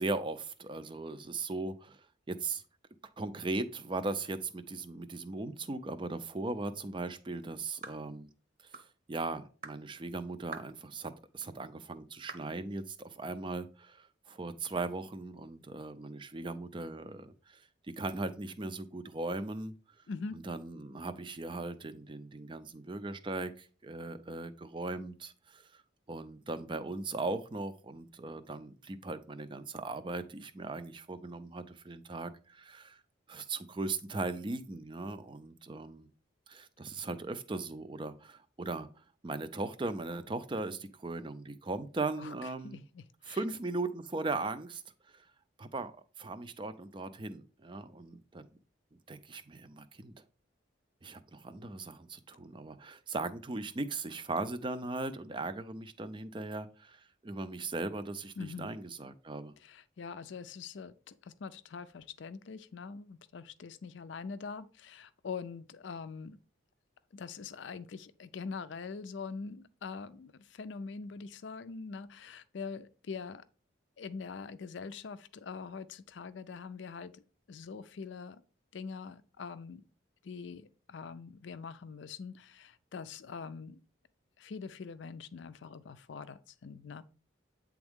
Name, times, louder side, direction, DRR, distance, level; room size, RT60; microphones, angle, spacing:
voice 1, 0.0-2.6 3.2-8.3 8.6-17.7 18.0-19.7 20.3-25.8 26.1-33.0 33.3-36.1 36.5-42.8 43.3-44.8 45.1-45.3 45.6-45.9 46.2-48.5 49.1-50.1 51.0-59.5, right 3 dB, 25° right, 0.4 m, -38 dB
sound 1, 7.8-8.1 8.7-8.9 9.6-9.8 10.5-10.8 11.4-11.5 12.3-12.5, right 4 dB, 45° right, 0.8 m, -45 dB
voice 2, 20.1-20.4 42.2-42.3 42.6-43.4 58.4-58.8 59.6-66.4 67.1-73.4 74.0-77.2 77.5-78.4 78.7-79.8 80.2-83.8 84.4-87.0, left 5 dB, 70° left, 0.4 m, -43 dB
8.8 x 3.5 x 3.6 m
head